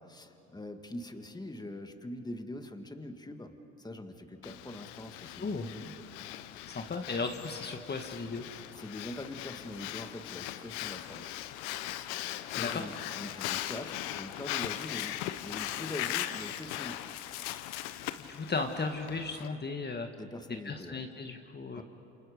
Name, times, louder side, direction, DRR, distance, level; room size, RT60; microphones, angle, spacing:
voice 1, 0.0-5.9 8.8-11.4 12.5-17.3 20.2-21.0 21.7-21.8, left 1 dB, 10° left, 7 dB, 1.8 m, -43 dB
Breathing, 4.4-19.5, left 14 dB, 80° left, 0.9 m, -39 dB
voice 2, 6.7-8.4 12.6-12.9 18.2-20.1 20.6-21.8, left 4 dB, 30° left, 4 dB, 1.6 m, -35 dB
28.0 x 28.0 x 5.1 m, 2.9 s
hypercardioid pair, 65°, 34 cm